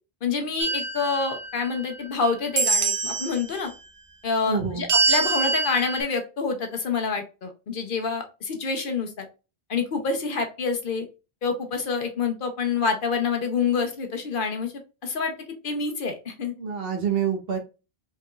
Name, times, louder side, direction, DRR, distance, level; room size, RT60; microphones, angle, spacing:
voice 1, 0.2-3.7 4.2-9.3 9.7-11.1 11.4-14.7 15.0-15.3 15.6-16.5, left 5 dB, 55° left, 5 dB, 0.8 m, -27 dB
sound 1, 0.6-2.1 2.6-3.4 4.9-6.0, right 4 dB, 45° right, 0.5 m, -25 dB
voice 2, 4.5-4.9 16.6-17.6, right 7 dB, 65° right, 4 dB, 1.1 m, -26 dB
4.7 x 3.5 x 2.3 m, 0.31 s
omnidirectional pair, 1.1 m